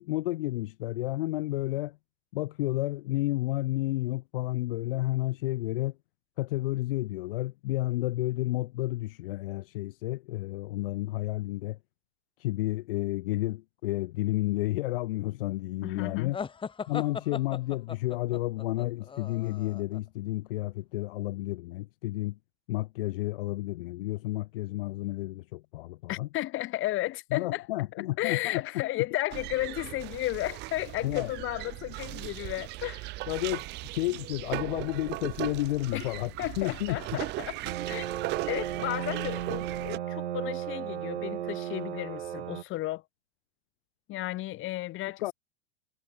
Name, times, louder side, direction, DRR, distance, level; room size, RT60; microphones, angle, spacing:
voice 1, 0.0-2.0 2.3-5.9 6.4-11.8 12.4-16.4 16.9-22.4 22.7-26.3 27.3-28.6 31.0-31.3 33.3-33.7 33.9-37.0 45.2-45.3, left 18 dB, 60° left, 0.7 m, -31 dB
voice 2, 15.8-16.3 26.1-27.7 28.2-33.0 35.9-36.1 36.4-38.1 38.5-43.0 44.1-45.3, left 17 dB, 40° left, 2.7 m, -33 dB
sound 1, 16.3-20.0, left 6 dB, 15° left, 1.5 m, -38 dB
sound 2, 29.3-40.0, right 20 dB, 35° right, 0.6 m, -38 dB
sound 3, 37.6-42.6, right 11 dB, 75° right, 0.9 m, -35 dB
hypercardioid pair, 95°, 32 cm